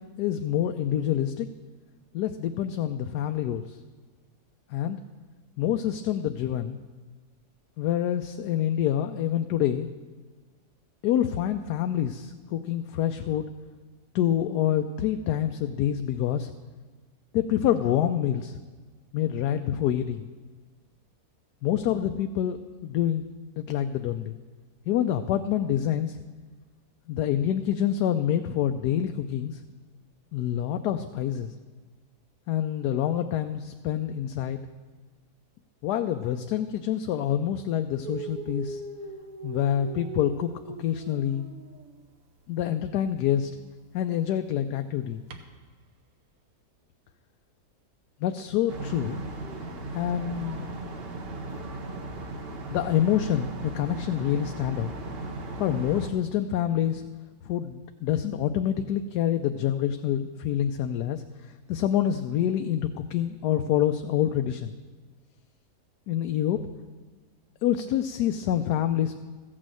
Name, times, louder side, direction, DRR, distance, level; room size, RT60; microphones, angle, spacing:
voice 1, 0.0-1.5 2.1-3.8 4.7-5.0 5.6-6.8 7.8-9.9 11.0-13.5 14.1-16.5 17.3-18.6 19.1-20.3 21.6-23.2 23.6-24.3 24.9-26.2 27.1-29.6 30.3-31.5 32.5-34.6 35.8-38.8 39.4-40.5 40.8-41.4 42.5-43.5 43.9-45.2 48.2-49.2 49.9-50.7 52.7-54.9 55.6-57.0 57.4-64.7 66.1-66.6 67.6-69.1, left 10 dB, 85° left, 7 dB, 1.1 m, -27 dB
Dog, 38.0-42.0 43.1-43.2 45.3-45.4, right 4 dB, 65° right, 1.4 m, -39 dB
sound 1, 48.7-56.1, right 2 dB, 45° right, 1.0 m, -37 dB
14.5 x 6.3 x 7.6 m, 1.4 s
omnidirectional pair, 1.7 m